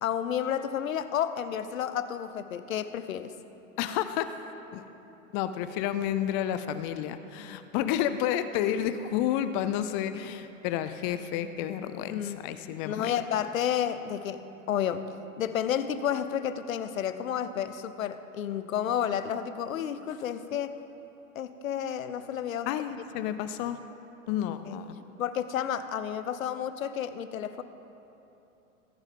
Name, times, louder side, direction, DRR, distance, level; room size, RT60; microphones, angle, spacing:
voice 1, 0.0-3.3 12.1-12.5 12.8-14.4 14.7-15.1 15.4-20.8 21.3-22.7 24.6-24.8 25.2-27.6, left 9 dB, 70° left, 12 dB, 0.9 m, -31 dB
voice 2, 3.8-4.3 4.7-4.8 5.3-13.1 22.7-23.8 24.3-25.0, left 10 dB, 25° left, 11 dB, 0.4 m, -30 dB
21.5 x 9.8 x 3.7 m, 3.0 s
hypercardioid pair, 105°, 42 cm